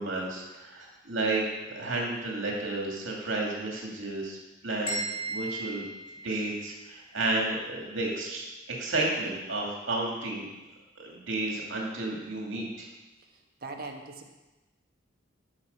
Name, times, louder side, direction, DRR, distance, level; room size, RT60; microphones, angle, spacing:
voice 1, 0.0-4.4 4.6-5.8 6.2-10.5 11.0-12.9, right 2 dB, 65° right, -2 dB, 2.6 m, -32 dB
sound 1, 4.9-6.9, right 2 dB, 25° left, 3.8 m, -36 dB
voice 2, 13.3-14.3, right 3 dB, 50° right, 2 dB, 1.3 m, -41 dB
12.5 x 6.3 x 5.6 m, 1.1 s
head